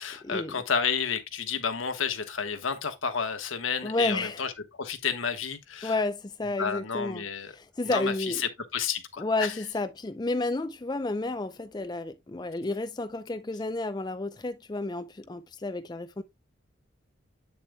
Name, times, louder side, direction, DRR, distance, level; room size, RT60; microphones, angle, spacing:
voice 1, 0.0-5.9 6.6-7.5 7.8-9.5, left 6 dB, 85° left, 1.3 m, -31 dB
voice 2, 3.8-4.4 5.8-7.2 7.5-8.4 9.2-16.2, left 2 dB, 20° left, 0.4 m, -31 dB
8.5 x 7.0 x 2.2 m
head